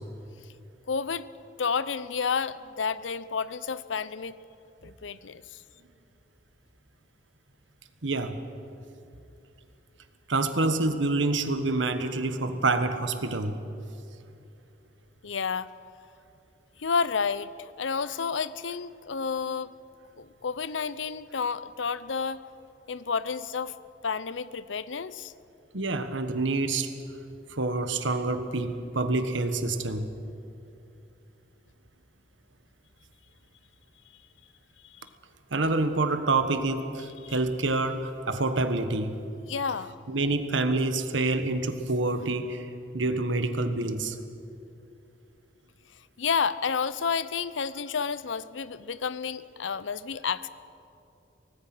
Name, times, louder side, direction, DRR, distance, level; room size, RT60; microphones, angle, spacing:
voice 1, 0.9-1.3 1.6-4.3 4.8-5.6 15.2-15.7 16.8-19.7 20.2-22.4 22.9-23.7 24.0-25.3 35.0-35.1 37.2-37.3 39.5-40.0 46.2-50.5, left 5 dB, 85° left, 16 dB, 0.7 m, -30 dB
voice 2, 8.0-8.4 10.3-13.6 25.7-26.9 27.5-30.1 35.5-39.1 40.1-44.2, right 2 dB, 85° right, 8 dB, 1.4 m, -27 dB
25.0 x 18.5 x 6.1 m, 2.7 s
head